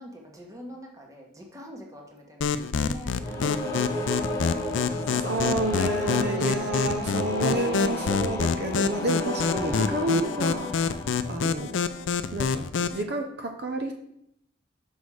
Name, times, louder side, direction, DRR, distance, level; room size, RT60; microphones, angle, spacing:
voice 1, 0.0-3.8, equal, 20° right, 0 dB, 1.3 m, -44 dB
sound 1, 2.4-13.0, left 5 dB, 90° left, 0.4 m, -27 dB
sound 2, 3.2-12.0, left 1 dB, 20° left, 1.3 m, -33 dB
voice 2, 5.1-10.7 11.3-11.7 12.3-13.9, right 2 dB, 60° right, 4 dB, 0.7 m, -29 dB
6.2 x 5.4 x 4.8 m, 0.74 s
head